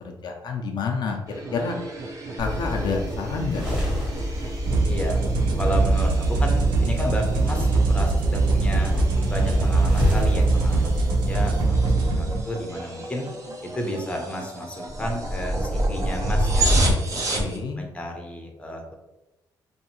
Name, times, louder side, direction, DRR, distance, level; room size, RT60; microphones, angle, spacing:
voice 1, 0.0-1.2 1.5-1.7 2.4-3.8 17.3-17.8, left 4 dB, 65° left, 2 dB, 0.4 m, -28 dB
sound 1, 1.3-17.6, right 1 dB, 40° right, 0.7 m, -30 dB
sound 2, 2.4-11.7, left 1 dB, 10° right, 1.0 m, -29 dB
sound 3, 4.6-12.4, right 3 dB, 85° right, 0.4 m, -22 dB
voice 2, 4.8-5.2 5.6-8.9 9.3-13.2 13.7-17.5 17.8-18.9, equal, 15° left, 1 dB, 0.6 m, -32 dB
2.7 x 2.4 x 2.8 m, 1.0 s
cardioid pair, 100°, 8 cm